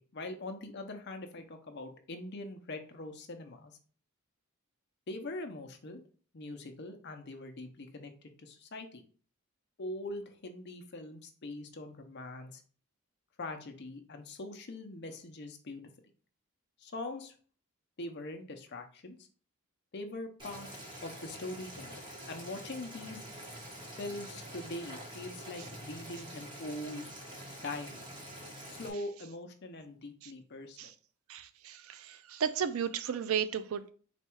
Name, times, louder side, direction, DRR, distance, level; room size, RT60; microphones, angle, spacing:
voice 1, 0.0-3.7 5.1-6.0 6.3-8.1 8.4-9.0 9.8-12.6 13.4-15.8 16.8-17.3 18.0-19.2 19.9-20.7 21.0-22.0 22.3-23.2 24.0-27.0 27.6-28.0 28.7-30.9, left 2 dB, 50° left, 6 dB, 0.6 m, -42 dB
Boiling, 20.4-28.9, equal, 20° right, 1.1 m, -46 dB
voice 2, 31.3-33.9, right 7 dB, 75° right, 11 dB, 0.4 m, -34 dB
4.2 x 2.3 x 4.4 m, 0.42 s
head